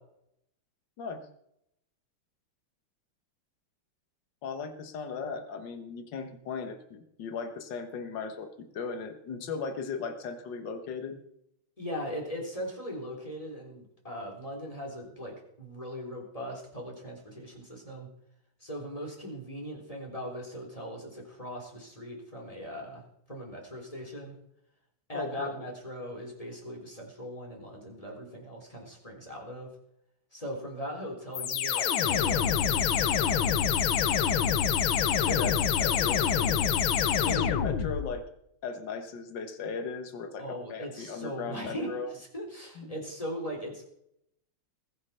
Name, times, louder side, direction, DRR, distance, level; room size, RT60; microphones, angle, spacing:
voice 1, 4.4-11.2 25.1-25.7 35.3-36.8 37.3-38.3 38.6-42.1 42.8-42.9, left 5 dB, 65° left, 7 dB, 2.0 m, -37 dB
voice 2, 11.8-18.1 18.6-24.4 25.1-29.7 30.3-33.6 40.4-43.9, equal, 15° left, -1 dB, 3.6 m, -39 dB
sound 1, 31.3-38.2, left 8 dB, 80° left, 1.7 m, -26 dB
20.0 x 6.7 x 5.8 m, 0.75 s
omnidirectional pair, 2.2 m